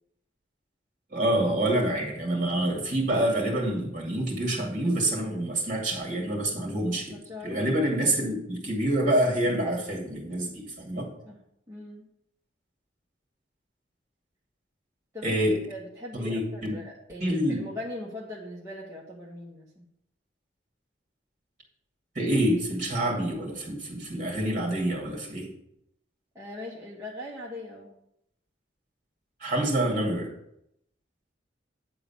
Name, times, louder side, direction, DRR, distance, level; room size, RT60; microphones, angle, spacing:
voice 1, 1.1-7.2 7.4-11.1 15.2-15.7 16.1-16.8 17.2-17.7 22.1-25.5 29.4-30.3, right 1 dB, 45° right, 0 dB, 2.2 m, -27 dB
voice 2, 7.1-7.9 11.3-11.4 11.7-12.1 15.1-15.4 15.7-19.8 26.3-27.9, left 1 dB, 15° right, -6 dB, 1.2 m, -40 dB
9.1 x 3.9 x 6.8 m, 0.79 s
head